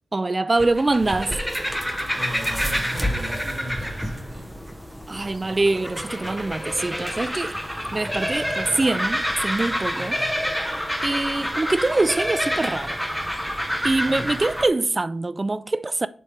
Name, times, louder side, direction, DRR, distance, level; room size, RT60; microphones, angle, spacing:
voice 1, 0.1-1.4 5.1-7.5 7.9-10.2 11.0-13.0 13.8-16.1, right 2 dB, 25° right, 0.3 m, -24 dB
sound 1, 0.6-14.7, equal, ahead, 0.7 m, -28 dB
voice 2, 1.9-4.5 9.9-10.3 14.0-14.4, right 1 dB, 50° right, 2.1 m, -37 dB
7.5 x 3.2 x 4.9 m
wide cardioid pair, 110°, 0 cm